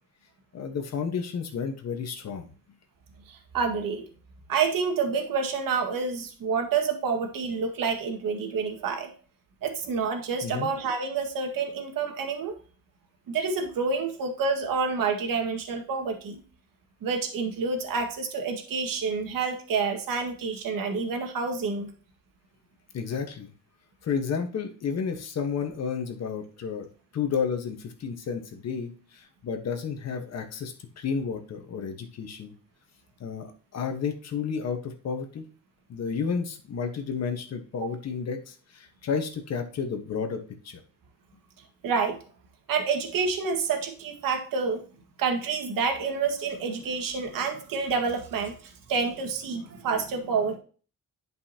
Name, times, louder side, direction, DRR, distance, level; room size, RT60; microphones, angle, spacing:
voice 1, 0.5-2.5 10.4-10.7 22.9-23.5 24.0-26.9 27.1-32.5 33.2-35.5 35.9-40.8, left 6 dB, 50° left, 6 dB, 1.4 m, -31 dB
voice 2, 3.3-4.0 4.5-9.1 9.6-12.5 13.3-16.4 17.0-21.9 41.8-42.2 42.7-44.8 45.2-50.6, right 5 dB, 85° right, 4 dB, 1.9 m, -28 dB
10.5 x 5.5 x 2.9 m, 0.39 s
wide cardioid pair, 175°, 33 cm